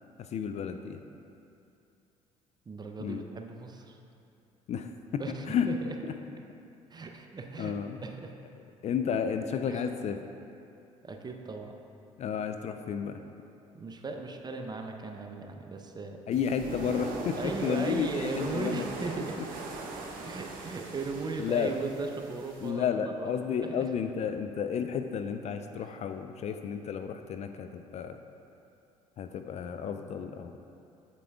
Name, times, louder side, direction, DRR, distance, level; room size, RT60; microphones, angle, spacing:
voice 1, 0.2-1.0 3.0-3.2 4.7-5.7 6.0-6.2 7.0-7.1 7.6-8.0 8.8-10.2 12.2-13.2 16.3-18.9 21.4-21.8 22.6-28.2 29.2-30.5, left 7 dB, 40° left, 7 dB, 0.4 m, -32 dB
voice 2, 2.7-4.0 5.2-6.0 6.9-7.7 8.0-8.3 9.7-9.8 11.0-11.7 13.7-16.2 17.4-19.4 20.2-22.9 23.2-23.3 23.6-23.8 25.8-25.9, right 3 dB, 25° right, 4 dB, 0.7 m, -37 dB
sound 1, 16.3-22.7, right 3 dB, 55° right, 0.9 m, -40 dB
8.2 x 7.5 x 2.3 m, 2.6 s
figure-of-eight pair, 50°, 17 cm